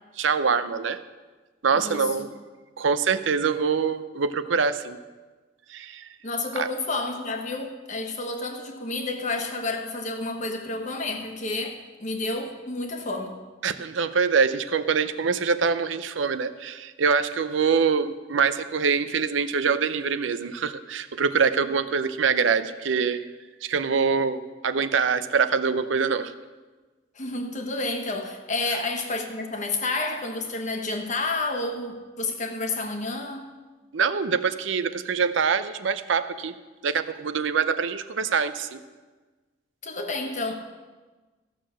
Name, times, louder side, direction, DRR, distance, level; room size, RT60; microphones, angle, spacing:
voice 1, 0.2-1.0 1.6-2.3 2.8-5.0 5.7-6.1 6.6-6.7 13.6-23.2 23.6-26.3 33.9-36.5 36.8-38.8, right 5 dB, 75° right, 12 dB, 0.6 m, -24 dB
voice 2, 1.8-2.1 6.2-13.3 27.1-33.5 39.8-40.5, left 2 dB, 40° left, 4 dB, 1.2 m, -30 dB
14.5 x 6.6 x 6.3 m, 1.3 s
head